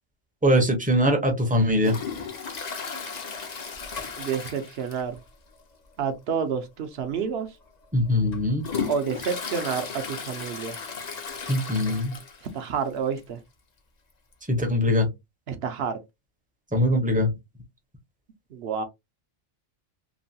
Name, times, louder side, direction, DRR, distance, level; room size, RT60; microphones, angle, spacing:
voice 1, 0.4-1.9 7.9-8.6 11.5-12.1 14.5-15.1 16.7-17.3, left 1 dB, 10° right, 0.5 m, -22 dB
Toilet flush, 1.8-5.3 5.5-5.6 6.1-6.2 7.0-7.1 7.7-12.6 12.9-13.0 13.2-13.3 14.3-14.4, left 5 dB, 45° left, 0.6 m, -35 dB
voice 2, 4.2-5.2 6.0-7.5 8.9-10.8 12.5-13.4 15.5-16.0 18.5-18.8, right 6 dB, 60° right, 0.8 m, -29 dB
3.0 x 2.2 x 2.6 m
omnidirectional pair, 1.3 m